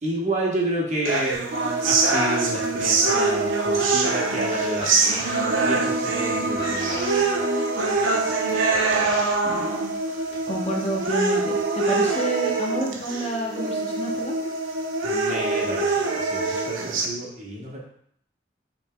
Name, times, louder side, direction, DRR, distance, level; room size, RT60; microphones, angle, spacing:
voice 1, 0.0-1.5 1.8-5.0 5.6-7.3 15.0-17.8, right 1 dB, 35° right, -3 dB, 1.1 m, -30 dB
sound 1, 1.1-17.1, right 3 dB, 90° right, 0.7 m, -24 dB
sound 2, 1.3-3.7 3.9-4.3 4.6-10.6 11.4-11.5, equal, 50° left, 1.6 m, -37 dB
voice 2, 10.5-14.4, right 1 dB, 30° left, -1 dB, 0.7 m, -29 dB
5.5 x 4.3 x 2.2 m, 0.67 s
head